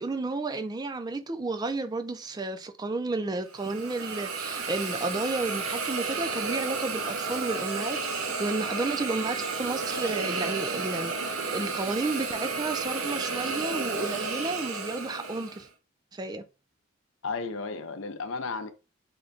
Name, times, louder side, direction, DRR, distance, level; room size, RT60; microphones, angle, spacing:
voice 1, 0.0-15.7 16.1-16.4, right 3 dB, 20° right, 0.4 m, -32 dB
Hiss, 3.5-15.6, right 4 dB, 90° right, 0.7 m, -32 dB
voice 2, 17.2-18.7, left 4 dB, 65° left, 0.5 m, -33 dB
3.7 x 2.2 x 3.8 m
head